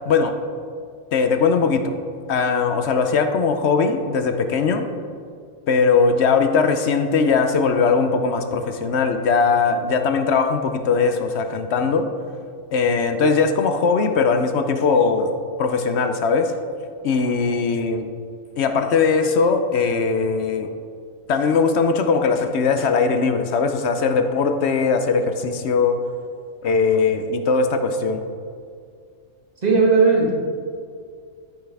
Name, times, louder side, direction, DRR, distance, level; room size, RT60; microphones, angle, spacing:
voice 1, 0.1-0.4 1.1-1.9 2.3-4.9 5.7-12.1 12.7-15.3 15.6-16.5 17.0-18.1 18.6-20.7 21.3-26.0 26.6-28.2, left 5 dB, 60° left, 7 dB, 0.9 m, -20 dB
voice 2, 29.6-30.3, right 4 dB, 30° right, -2 dB, 1.7 m, -16 dB
13.0 x 5.8 x 3.4 m, 2.2 s
omnidirectional pair, 1.4 m